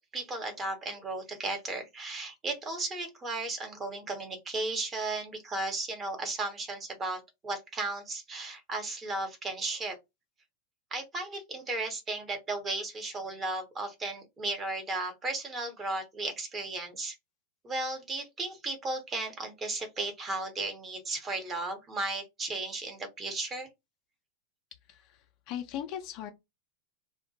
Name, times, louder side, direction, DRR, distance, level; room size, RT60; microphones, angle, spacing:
voice 1, 0.1-10.0 10.9-17.1 17.6-23.7, right 2 dB, 20° right, 0.9 m, -35 dB
voice 2, 25.5-26.3, left 10 dB, 40° left, 0.4 m, -37 dB
2.1 x 2.1 x 2.7 m
figure-of-eight pair, 90°, 0 cm